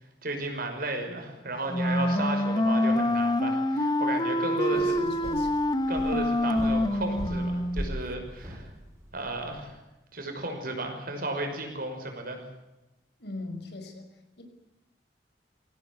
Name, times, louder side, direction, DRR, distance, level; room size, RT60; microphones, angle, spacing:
voice 1, 0.2-5.0 5.9-8.7 9.1-9.8 10.1-12.4, right 2 dB, 55° right, 4 dB, 5.8 m, -34 dB
Wind instrument woodwind instrument, 1.7-7.9, left 1 dB, 25° left, 1.1 m, -26 dB
voice 2, 4.6-5.6 13.2-14.4, left 2 dB, 70° left, 6 dB, 5.3 m, -41 dB
sound 1, 4.7-9.7, equal, 20° right, 4.8 m, -40 dB
24.5 x 17.5 x 8.5 m, 0.96 s
head